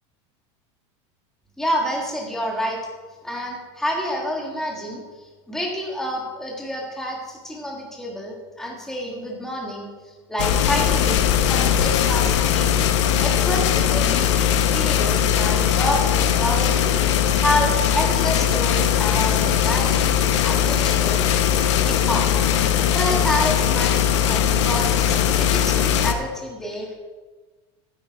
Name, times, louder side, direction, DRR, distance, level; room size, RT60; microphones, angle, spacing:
voice 1, 1.6-2.8 3.2-12.8 13.2-20.2 20.4-22.3 22.8-26.9, equal, 5° left, -1 dB, 1.8 m, -28 dB
sound 1, 10.4-26.1, left 9 dB, 85° left, 1.1 m, -20 dB
12.0 x 9.8 x 4.7 m, 1.3 s
supercardioid pair, 165°, 15 cm